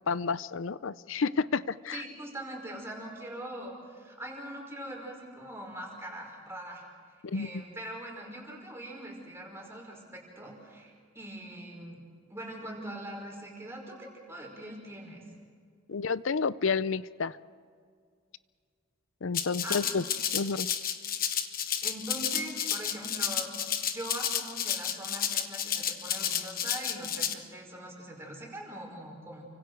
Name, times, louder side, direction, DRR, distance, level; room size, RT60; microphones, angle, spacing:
voice 1, 0.1-2.0 7.2-7.6 15.9-17.4 19.2-20.0 20.3-20.7, left 5 dB, 65° left, 17 dB, 0.6 m, -30 dB
voice 2, 1.9-6.8 7.3-12.0 12.3-15.2 19.6-19.9 21.8-23.5 23.9-29.5, right 1 dB, 10° right, -1 dB, 5.2 m, -42 dB
Rattle (instrument), 19.3-27.3, left 9 dB, 45° left, 1.1 m, -31 dB
30.0 x 25.0 x 4.7 m, 2.1 s
head